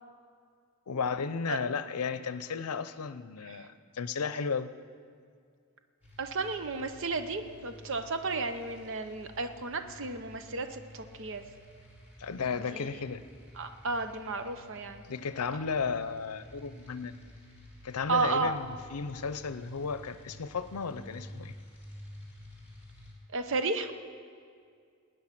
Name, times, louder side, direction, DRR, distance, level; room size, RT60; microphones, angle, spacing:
voice 1, 0.9-4.7 12.2-13.2 15.1-17.1 17.8-21.5, left 5 dB, 85° left, 13 dB, 0.6 m, -34 dB
sound 1, 6.0-23.1, left 1 dB, 5° right, 3.2 m, -51 dB
voice 2, 6.2-11.4 12.7-12.9 13.6-15.0 18.1-18.6 23.3-23.9, right 3 dB, 60° right, 8 dB, 0.8 m, -33 dB
19.0 x 9.4 x 5.9 m, 2.2 s
head